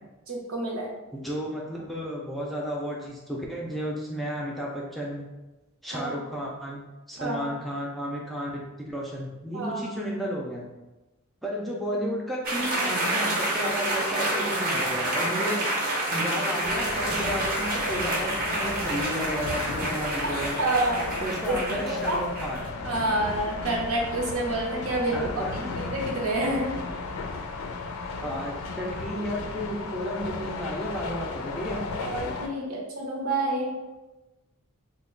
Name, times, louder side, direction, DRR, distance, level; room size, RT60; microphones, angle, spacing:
voice 1, 0.3-0.9 5.9-6.1 7.2-7.5 9.5-9.8 20.2-21.1 21.5-22.2 22.8-25.4 25.9-26.7 32.0-33.7, right 2 dB, 75° right, -1 dB, 0.8 m, -28 dB
voice 2, 1.1-5.3 5.8-6.8 7.1-10.6 11.4-15.7 16.1-20.6 21.2-22.8 25.1-25.7 28.2-31.8, equal, ahead, -4 dB, 0.4 m, -33 dB
sound 1, 12.4-22.7, right 1 dB, 40° right, 0.7 m, -28 dB
sound 2, 16.6-32.5, left 4 dB, 75° left, 0.4 m, -35 dB
3.0 x 2.2 x 3.7 m, 1.1 s
head